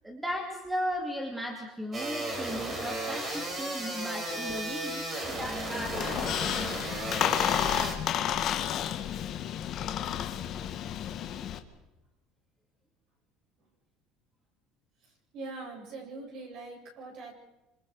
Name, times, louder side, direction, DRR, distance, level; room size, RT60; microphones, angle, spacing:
voice 1, 0.0-6.5, equal, 5° right, 1 dB, 2.7 m, -36 dB
sound 1, 1.9-7.9, right 1 dB, 25° right, 5.4 m, -35 dB
Squeak, 5.8-11.6, left 10 dB, 40° left, 1.6 m, -31 dB
voice 2, 15.3-17.3, right 3 dB, 45° right, 0 dB, 7.7 m, -42 dB
28.0 x 26.5 x 4.9 m, 0.97 s
cardioid pair, 155°, 0 cm